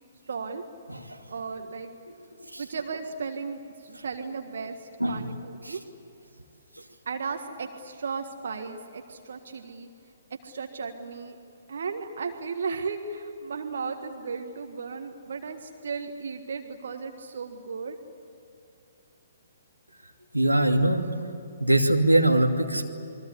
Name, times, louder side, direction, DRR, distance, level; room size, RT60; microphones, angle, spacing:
voice 1, 0.3-0.6 1.3-1.9 2.6-5.8 7.0-9.9 10.3-11.4 11.7-18.0, right 5 dB, 55° right, 5 dB, 1.7 m, -35 dB
voice 2, 5.0-5.3 5.6-5.8 20.3-21.1 21.6-22.9, right 1 dB, 90° right, 2 dB, 2.6 m, -22 dB
28.5 x 22.5 x 8.2 m, 2.7 s
figure-of-eight pair, 125°, 0 cm